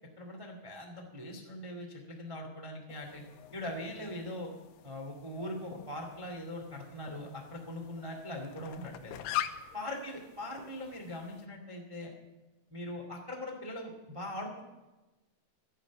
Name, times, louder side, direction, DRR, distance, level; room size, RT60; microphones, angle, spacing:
voice 1, 0.2-3.2 3.5-4.5 4.8-9.2 9.7-12.1 12.7-14.6, left 1 dB, 20° right, 1 dB, 0.8 m, -41 dB
sound 1, 2.9-11.5, left 12 dB, 85° left, 2.7 m, -44 dB
12.5 x 11.0 x 8.2 m, 1.1 s
omnidirectional pair, 4.6 m